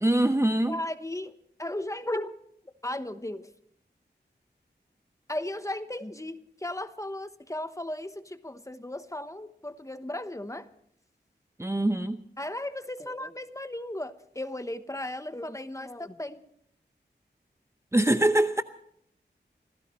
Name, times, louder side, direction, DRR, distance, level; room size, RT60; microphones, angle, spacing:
voice 1, 0.0-0.8 11.6-12.2 17.9-18.6, right 1 dB, 15° right, 0.7 m, -23 dB
voice 2, 0.7-2.4 2.8-3.5 5.3-10.7 12.4-16.4, left 1 dB, 15° left, 1.0 m, -36 dB
26.5 x 16.5 x 3.2 m
wide cardioid pair, 80°, 18 cm